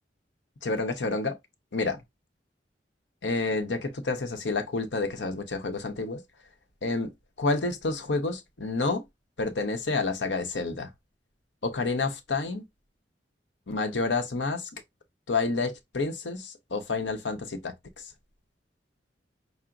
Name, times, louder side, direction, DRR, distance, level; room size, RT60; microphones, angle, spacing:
voice 1, 0.6-1.4 1.7-2.0 3.2-6.2 6.8-7.1 7.4-9.0 9.4-10.9 11.6-12.6 13.7-14.7 15.3-17.7, left 3 dB, 85° left, 0.9 m, -29 dB
5.8 x 2.0 x 3.8 m
head